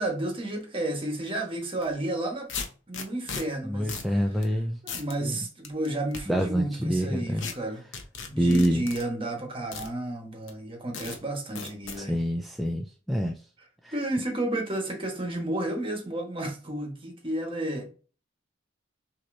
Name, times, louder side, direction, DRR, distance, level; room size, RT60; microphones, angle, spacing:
voice 1, 0.0-2.5 2.9-4.2 4.8-7.8 8.2-12.2 13.9-17.9, right 1 dB, 30° right, 1.2 m, -32 dB
sound 1, 1.7-1.9 2.5-3.4 3.9-4.1 4.4-4.5 4.9-5.1 5.6-6.2 7.4-7.5 7.9-9.0 9.7-9.9 10.5-10.6 10.9-11.2 11.6-12.0, left 5 dB, 70° left, 0.9 m, -36 dB
voice 2, 3.6-4.8 5.2-5.4 6.3-7.5 8.4-8.8 12.0-13.3 13.8-13.9, equal, ahead, 0.4 m, -26 dB
6.3 x 2.9 x 2.7 m
head